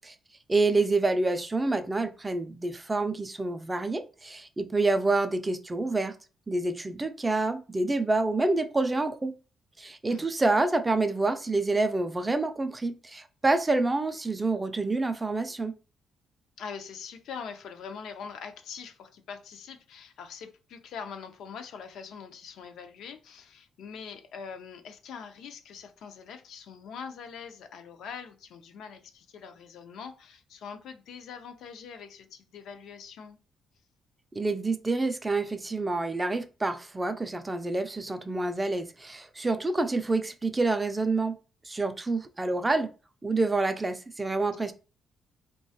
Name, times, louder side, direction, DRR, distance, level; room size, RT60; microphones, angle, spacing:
voice 1, 0.5-6.1 6.5-9.3 9.8-15.7 34.4-41.4 41.7-42.9 43.2-44.7, right 3 dB, 20° right, 0.3 m, -27 dB
voice 2, 16.6-33.4, left 6 dB, 75° left, 0.3 m, -43 dB
2.3 x 2.2 x 2.6 m
cardioid pair, 90°, 0 cm